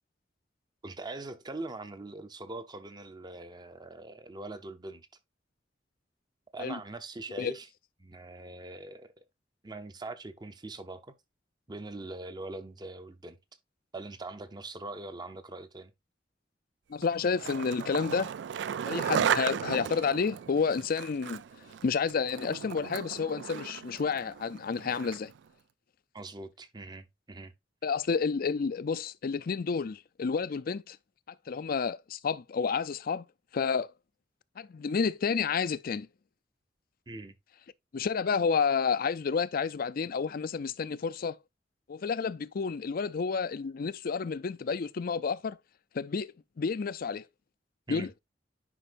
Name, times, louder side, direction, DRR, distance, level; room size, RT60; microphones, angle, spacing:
voice 1, 0.8-5.1 6.5-7.7 8.0-9.1 9.6-11.1 11.7-13.4 13.9-15.9 26.1-27.5 37.1-37.3 47.9-48.1, right 2 dB, 25° right, 0.8 m, -42 dB
voice 2, 16.9-18.3 18.9-25.3 27.8-31.0 31.5-33.2 33.5-33.9 34.6-36.1 37.9-41.4 41.9-45.6 45.9-47.2 47.9-48.2, left 5 dB, 55° left, 0.4 m, -30 dB
Skateboard, 17.0-25.4, right 8 dB, 75° right, 0.3 m, -35 dB
10.0 x 5.4 x 2.5 m
head